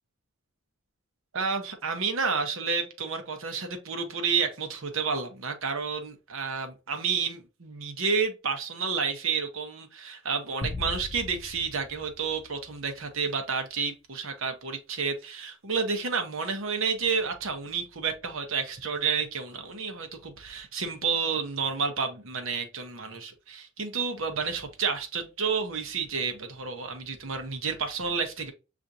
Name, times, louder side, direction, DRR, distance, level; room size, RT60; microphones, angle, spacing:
voice 1, 1.3-28.5, right 5 dB, 70° right, 0.8 m, -30 dB
sound 1, 10.6-13.1, left 2 dB, 25° left, 0.4 m, -39 dB
7.0 x 2.5 x 2.6 m
head